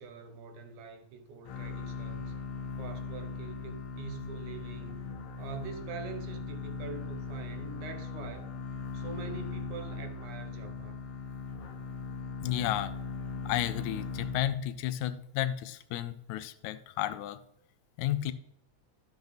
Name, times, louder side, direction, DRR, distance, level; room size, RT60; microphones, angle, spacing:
voice 1, 0.0-2.3 2.8-5.1 5.4-8.5 8.9-11.0, right 5 dB, 90° right, 2.4 m, -44 dB
sound 1, 1.4-14.9, left 4 dB, 70° left, 1.3 m, -39 dB
voice 2, 12.4-12.9 13.5-17.4 18.0-18.3, left 13 dB, 85° left, 2.0 m, -32 dB
12.0 x 5.5 x 4.0 m
omnidirectional pair, 3.3 m